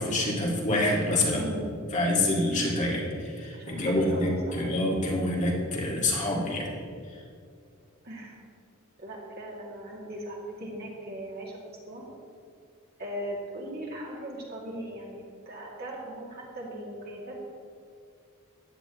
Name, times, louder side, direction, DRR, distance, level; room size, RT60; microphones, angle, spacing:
voice 1, 0.0-1.4 1.9-6.7, left 1 dB, 35° left, -3 dB, 2.0 m, -26 dB
voice 2, 1.3-1.7 3.5-4.6 8.0-8.4 9.0-11.6 11.9-12.1 13.0-17.4, right 1 dB, 50° right, -3 dB, 2.3 m, -39 dB
15.0 x 9.9 x 3.0 m, 2.3 s
head